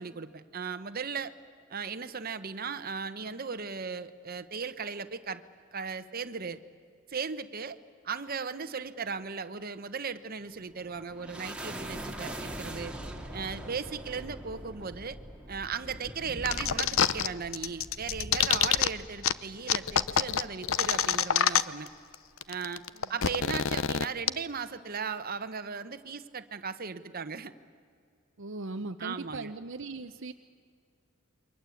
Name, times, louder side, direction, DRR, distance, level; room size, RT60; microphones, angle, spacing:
voice 1, 0.0-1.3 1.7-5.4 5.7-6.6 7.1-7.8 8.0-12.9 13.3-15.2 15.5-21.9 22.5-22.8 23.1-27.5 29.0-29.5, right 5 dB, 45° right, 10 dB, 1.1 m, -37 dB
sound 1, 10.4-21.2, right 1 dB, 5° right, 2.4 m, -43 dB
sound 2, 16.5-17.3 17.5-18.9 19.2-19.3 19.7-21.9 22.1-22.2 22.4-24.3, left 8 dB, 70° left, 0.7 m, -26 dB
voice 2, 28.4-30.3, right 3 dB, 60° right, 7 dB, 0.8 m, -39 dB
29.0 x 24.0 x 8.5 m, 2.2 s
head